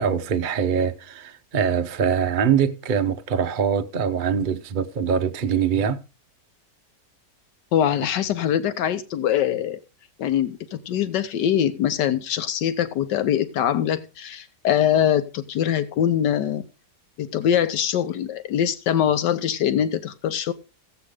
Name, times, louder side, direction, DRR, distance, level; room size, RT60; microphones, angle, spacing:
voice 1, 0.0-6.0, right 7 dB, 50° right, 0.6 m, -23 dB
voice 2, 7.7-9.8 10.2-16.6 17.2-20.5, left 10 dB, 85° left, 1.4 m, -23 dB
15.0 x 8.1 x 4.9 m
omnidirectional pair, 1.9 m